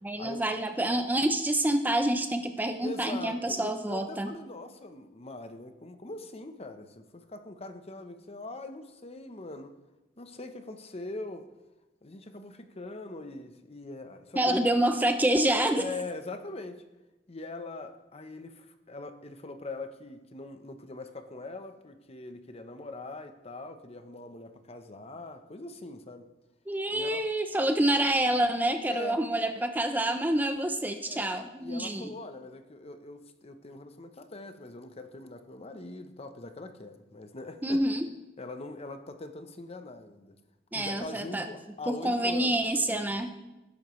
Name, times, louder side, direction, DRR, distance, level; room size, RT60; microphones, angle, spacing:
voice 1, 0.0-4.3 14.4-15.9 26.7-32.1 37.6-38.1 40.7-41.5 41.9-43.3, right 1 dB, 10° right, 7 dB, 0.6 m, -27 dB
voice 2, 2.8-9.7 10.2-11.5 12.0-14.6 15.8-16.8 17.3-26.3 26.9-27.2 28.9-29.2 31.1-31.3 31.6-37.8 38.4-40.4 40.7-43.0, left 2 dB, 35° left, 8 dB, 0.9 m, -42 dB
19.5 x 10.5 x 3.2 m, 1.0 s
head